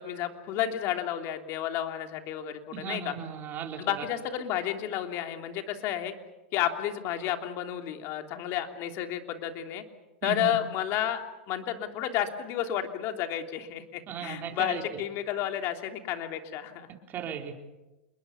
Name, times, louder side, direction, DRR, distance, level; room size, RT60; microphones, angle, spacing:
voice 1, 0.0-3.1 3.8-6.1 6.5-9.8 10.2-11.2 11.5-16.9, left 11 dB, 45° left, 5 dB, 3.1 m, -31 dB
voice 2, 2.7-4.1 10.2-10.5 14.1-14.8 17.1-17.6, right 8 dB, 35° right, 3 dB, 4.0 m, -36 dB
27.5 x 22.0 x 7.2 m, 1.0 s
hypercardioid pair, 115°, 6 cm